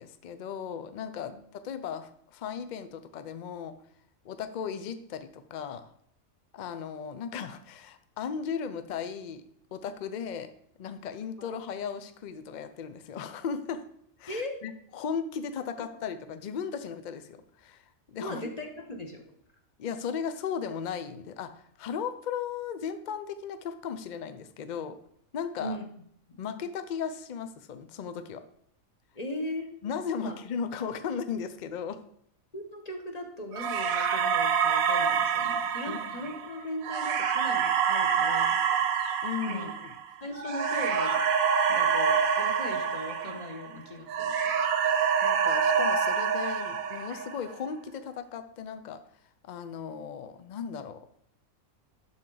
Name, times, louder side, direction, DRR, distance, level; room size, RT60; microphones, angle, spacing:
voice 1, 0.0-3.8 4.2-5.9 6.5-9.4 9.7-10.5 10.8-13.8 14.2-17.8 18.1-18.5 19.8-25.0 25.3-25.8 26.4-28.4 29.8-32.0 35.9-36.2 39.2-39.9 45.2-49.0 49.5-51.0, left 7 dB, 70° left, 10 dB, 0.4 m, -36 dB
voice 2, 18.2-19.2 25.6-25.8 29.1-29.7 30.2-30.3 32.5-38.9 39.5-39.7 40.2-41.2 41.7-44.5, left 1 dB, 35° left, 3 dB, 0.9 m, -38 dB
sound 1, 33.6-43.8 44.1-47.5, right 7 dB, 80° right, 1.2 m, -27 dB
11.5 x 3.9 x 3.8 m, 0.68 s
omnidirectional pair, 1.5 m